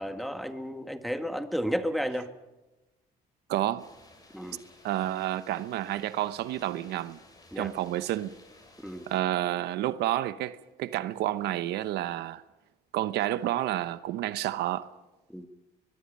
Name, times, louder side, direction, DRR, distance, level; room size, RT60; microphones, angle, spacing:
voice 1, 0.0-2.3 4.3-4.6 7.5-7.7 8.8-9.0 15.3-15.5, equal, ahead, 1.7 m, -32 dB
voice 2, 3.5-3.9 4.8-7.2 7.6-8.3 9.1-12.4 12.9-14.9, right 14 dB, 80° right, 0.9 m, -30 dB
sound 1, 3.8-9.2, left 2 dB, 20° left, 7.2 m, -56 dB
23.5 x 22.0 x 5.5 m
cardioid pair, 110°, 17 cm